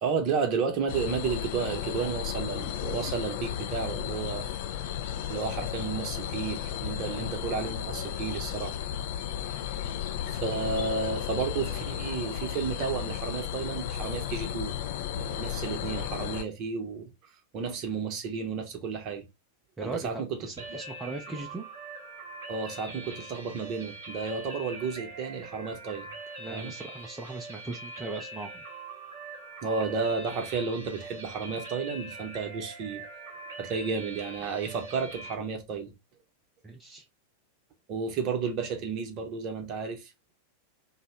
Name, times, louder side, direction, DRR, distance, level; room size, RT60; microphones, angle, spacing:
voice 1, 0.0-4.5 5.3-8.7 9.4-9.5 10.3-14.8 15.1-17.1 17.5-19.3 19.8-20.8 22.5-26.1 26.5-26.7 29.6-33.0 33.6-35.9 37.9-40.1, right 5 dB, 40° right, 0.7 m, -32 dB
sound 1, 0.9-16.4, left 10 dB, 50° left, 0.4 m, -34 dB
voice 2, 19.8-21.6 26.4-28.6 36.6-37.1, right 3 dB, 15° right, 0.4 m, -39 dB
sound 2, 20.6-35.3, right 2 dB, 70° right, 1.0 m, -43 dB
2.7 x 2.1 x 2.9 m
figure-of-eight pair, 90°, 0 cm